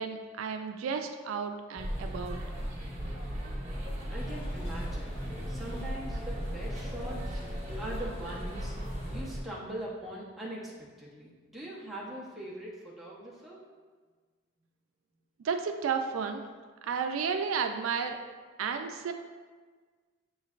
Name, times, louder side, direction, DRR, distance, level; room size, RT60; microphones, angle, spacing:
voice 1, 0.0-2.4 15.4-16.4 16.9-18.2 18.6-19.1, right 6 dB, 90° right, 6 dB, 0.3 m, -32 dB
sound 1, 1.8-9.4, equal, 35° right, 0.9 m, -36 dB
voice 2, 4.1-5.1 5.5-7.4 7.7-8.8 9.1-13.7, right 1 dB, ahead, -7 dB, 0.8 m, -42 dB
sound 2, 4.2-9.2, left 2 dB, 30° left, 0.4 m, -49 dB
6.7 x 3.1 x 2.4 m, 1.5 s
head